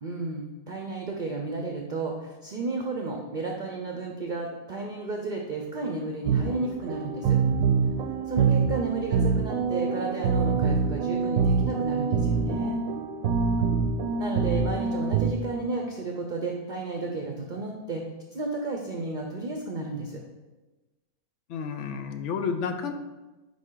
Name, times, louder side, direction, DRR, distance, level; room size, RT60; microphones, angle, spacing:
voice 1, 0.0-7.4 8.3-12.8 14.2-18.0 18.3-20.2, right 3 dB, 50° right, 2 dB, 0.6 m, -32 dB
sound 1, 6.3-15.3, right 5 dB, 75° right, 1.0 m, -25 dB
voice 2, 21.5-22.9, left 6 dB, 65° left, 7 dB, 0.9 m, -30 dB
9.2 x 3.7 x 3.8 m, 1.1 s
omnidirectional pair, 1.5 m